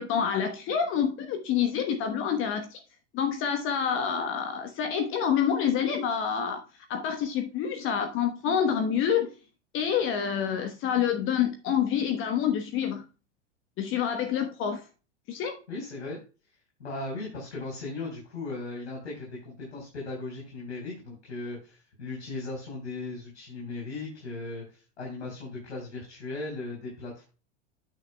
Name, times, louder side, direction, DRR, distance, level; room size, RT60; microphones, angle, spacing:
voice 1, 0.0-2.8 3.1-6.6 6.9-9.3 9.7-13.0 13.8-14.8 15.3-15.6, left 8 dB, 35° left, 1.2 m, -27 dB
voice 2, 15.7-16.2 16.8-27.2, left 3 dB, 70° left, 4.4 m, -37 dB
9.2 x 8.8 x 2.2 m
figure-of-eight pair, 90°, 35 cm